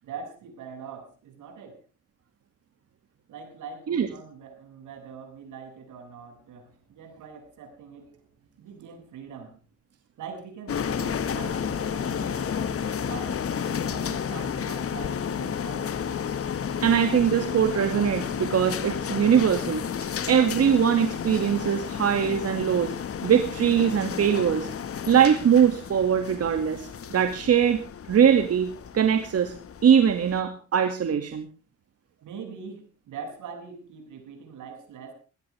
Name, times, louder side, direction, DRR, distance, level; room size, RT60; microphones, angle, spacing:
voice 1, 0.0-1.8 3.3-9.6 10.2-16.0 32.2-35.1, right 6 dB, 80° right, 6 dB, 7.4 m, -43 dB
sound 1, 10.7-30.4, left 7 dB, 50° left, 1.8 m, -32 dB
voice 2, 16.8-19.8 20.3-22.9 23.2-24.7 25.1-27.8 28.1-29.5 29.8-31.5, right 8 dB, 55° right, 7 dB, 2.3 m, -22 dB
20.0 x 18.5 x 3.5 m, 0.36 s
cardioid pair, 90°, 30 cm